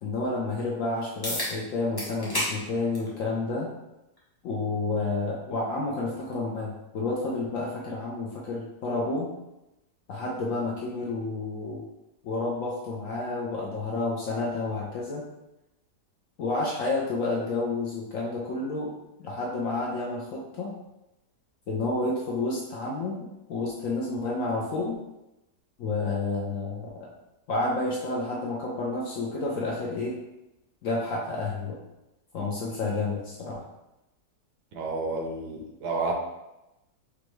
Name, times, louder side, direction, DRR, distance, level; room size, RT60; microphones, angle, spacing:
voice 1, 0.0-3.7 4.4-9.3 10.1-11.9 12.2-15.2 16.4-18.9 19.2-20.7 21.7-24.9 25.8-26.9 27.5-30.2 30.8-31.8 32.3-33.6, left 3 dB, 65° left, -4 dB, 0.8 m, -30 dB
sound 1, 1.2-1.5 2.0-2.5 2.9-3.1 4.2-4.3 9.2-9.3, left 1 dB, 20° left, 0.6 m, -29 dB
voice 2, 34.7-36.1, right 3 dB, 75° right, 0 dB, 1.3 m, -30 dB
5.1 x 2.2 x 3.1 m, 0.94 s
omnidirectional pair, 1.9 m